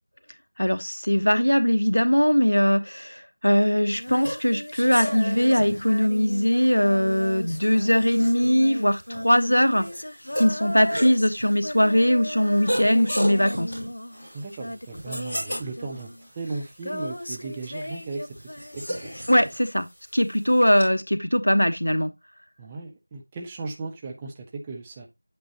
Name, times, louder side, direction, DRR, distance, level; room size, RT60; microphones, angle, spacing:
voice 1, 0.6-9.9 10.4-13.7 19.3-19.9 20.1-22.1, equal, 70° left, 1.1 m, -21 dB
Female singing, 3.9-19.3 20.8-20.9, left 1 dB, 55° left, 0.7 m, -36 dB
sound 1, 4.0-20.8, equal, 15° left, 3.4 m, -36 dB
voice 2, 14.3-18.3 18.7-19.1 22.6-25.1, right 3 dB, 10° right, 0.5 m, -36 dB
8.4 x 5.2 x 2.9 m
figure-of-eight pair, 175°, 0 cm